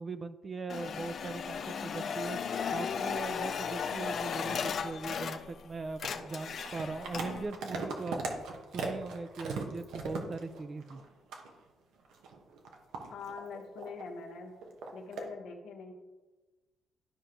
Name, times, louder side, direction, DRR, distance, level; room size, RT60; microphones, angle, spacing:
voice 1, 0.0-2.4 2.7-8.2 8.7-11.0, right 3 dB, 35° right, 12 dB, 0.5 m, -40 dB
sound 1, 0.7-5.6 5.9-7.4, left 6 dB, 60° left, 0.5 m, -36 dB
sound 2, 5.9-11.1 11.3-11.5 12.0-14.1 14.6-15.3, right 4 dB, 85° right, 1.1 m, -39 dB
voice 2, 13.1-14.5 14.9-15.9, left 5 dB, 80° left, 1 dB, 1.3 m, -44 dB
12.0 x 5.0 x 3.0 m, 1.2 s
cardioid pair, 90°, 0 cm